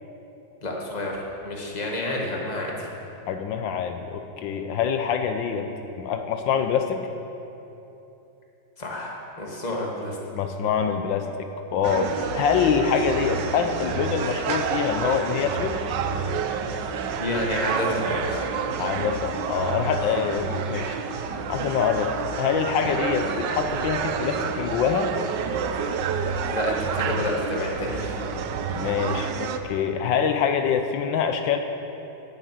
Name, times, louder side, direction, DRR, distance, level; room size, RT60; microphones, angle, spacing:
voice 1, 0.6-2.9 8.8-10.2 17.2-18.7 26.5-28.3, left 1 dB, 25° left, -2 dB, 1.7 m, -29 dB
voice 2, 3.3-5.7 6.0-7.0 10.3-15.8 18.8-21.0 21.5-25.1 28.7-31.6, left 7 dB, 80° left, 6 dB, 1.4 m, -25 dB
sound 1, 11.8-29.6, right 6 dB, 75° right, 1.3 m, -29 dB
9.7 x 9.0 x 8.3 m, 2.9 s
omnidirectional pair, 2.0 m